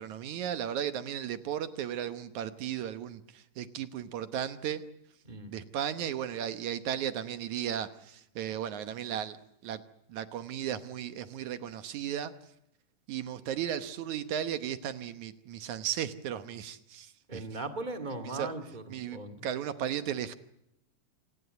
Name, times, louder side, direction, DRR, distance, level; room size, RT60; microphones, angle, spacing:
voice 1, 0.0-4.8 5.5-9.4 9.6-9.8 10.1-12.3 13.1-17.4 18.2-18.5 18.9-20.3, right 10 dB, 70° right, 11 dB, 2.3 m, -35 dB
voice 2, 17.3-18.9 19.1-19.4, right 2 dB, 15° right, 8 dB, 2.0 m, -38 dB
27.5 x 19.5 x 8.1 m, 0.81 s
omnidirectional pair, 3.9 m